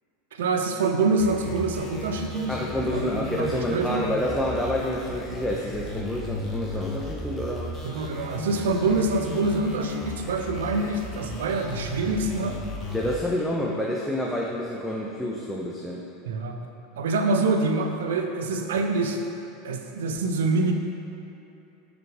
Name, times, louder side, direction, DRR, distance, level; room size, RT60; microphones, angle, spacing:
voice 1, 0.3-2.6 2.9-4.0 7.8-12.6 16.2-16.6 17.0-19.2 19.6-20.7, right 3 dB, 80° right, 5 dB, 0.6 m, -25 dB
sound 1, 1.2-13.2, left 1 dB, 25° left, 1.5 m, -36 dB
voice 2, 2.5-7.7 12.9-16.0, left 1 dB, ahead, -3 dB, 0.7 m, -28 dB
6.2 x 5.1 x 4.8 m, 2.8 s
hypercardioid pair, 90°, 0 cm